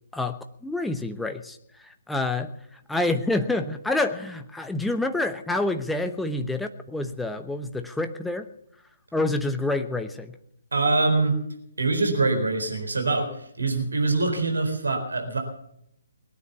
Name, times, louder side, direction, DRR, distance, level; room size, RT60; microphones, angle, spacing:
voice 1, 0.1-1.6 2.1-2.5 2.9-8.5 9.1-10.3, left 2 dB, 5° left, 7 dB, 0.9 m, -27 dB
voice 2, 10.7-11.3 11.8-15.4, right 3 dB, 75° right, 5 dB, 4.0 m, -24 dB
21.0 x 9.3 x 7.1 m, 0.74 s
figure-of-eight pair, 135°, 0 cm